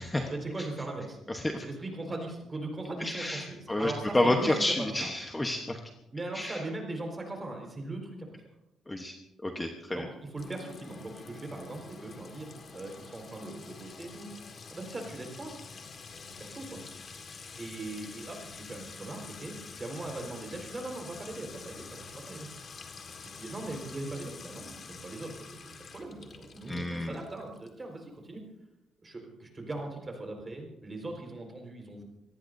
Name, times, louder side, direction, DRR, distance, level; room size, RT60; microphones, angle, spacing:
voice 1, 0.3-1.2 1.6-5.1 6.1-8.4 9.9-14.3 14.7-15.6 16.4-16.8 17.6-22.5 22.7-22.9 23.3-24.7 25.0-28.4 29.0-32.0, right 2 dB, 20° right, 2 dB, 4.6 m, -40 dB
voice 2, 1.3-1.6 3.0-5.8 6.3-6.6 8.9-9.2 9.4-10.1 26.7-27.1, left 1 dB, 10° left, 3 dB, 1.1 m, -30 dB
Sink (filling or washing) / Trickle dribble / Fill (with liquid), 10.4-27.8, left 4 dB, 35° left, 1.8 m, -47 dB
26.0 x 19.0 x 2.7 m, 0.92 s
cardioid pair, 155°, 0 cm